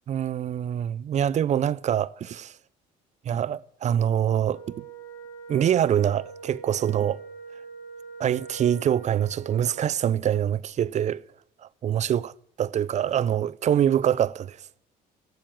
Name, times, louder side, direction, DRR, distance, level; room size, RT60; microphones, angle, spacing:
voice 1, 0.1-2.5 3.2-4.8 5.5-7.2 8.2-11.2 11.6-14.6, right 10 dB, 45° right, 0.5 m, -25 dB
Wind instrument woodwind instrument, 4.5-10.1, right 4 dB, 60° left, 3.9 m, -44 dB
12.5 x 9.3 x 8.7 m
cardioid pair, 110°, 17 cm